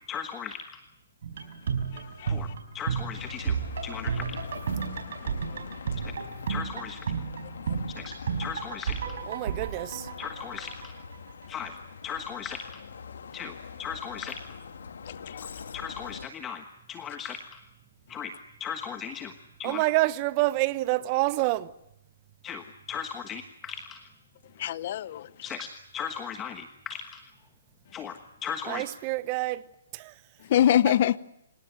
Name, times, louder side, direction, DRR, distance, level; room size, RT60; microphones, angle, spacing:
voice 1, 0.1-0.8 2.3-2.5 2.7-3.6 3.8-4.4 6.5-7.0 8.0-9.2 10.2-10.9 11.5-11.8 12.0-12.8 13.3-14.4 15.4-15.5 15.7-17.6 18.1-18.3 18.6-19.3 19.6-19.8 22.4-24.0 25.4-25.7 25.9-27.2 27.9-28.9, left 7 dB, 15° left, 1.3 m, -37 dB
sound 1, 1.2-11.1 11.4-11.5, right 6 dB, 65° right, 5.1 m, -33 dB
voice 2, 1.9-2.4 5.2-5.6 7.7-7.8 15.1-15.4 24.6-25.3 30.5-31.2, left 11 dB, 45° left, 0.8 m, -25 dB
Bus, 3.1-16.3, left 6 dB, 70° left, 2.4 m, -43 dB
voice 3, 9.2-10.1 19.6-21.7 28.7-29.6 29.9-30.1, right 19 dB, 30° right, 1.0 m, -27 dB
27.5 x 18.0 x 9.4 m
hypercardioid pair, 150°, 0 cm